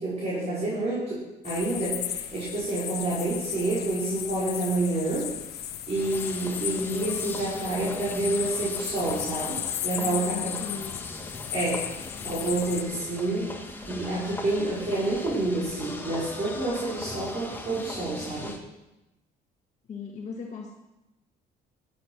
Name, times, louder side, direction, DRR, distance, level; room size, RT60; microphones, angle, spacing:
voice 1, 0.0-5.3 5.9-9.6 9.8-10.5 11.5-11.8 12.3-13.5 13.9-18.5, right 2 dB, 40° right, -7 dB, 5.1 m, -28 dB
sound 1, 1.4-12.8, left 11 dB, 70° left, 1.1 m, -35 dB
sound 2, 5.9-18.6, left 2 dB, 10° left, 1.6 m, -40 dB
voice 2, 10.0-11.0 19.9-20.7, left 5 dB, 45° left, 0 dB, 1.7 m, -38 dB
14.0 x 8.6 x 6.2 m, 0.96 s
cardioid pair, 110°, 17 cm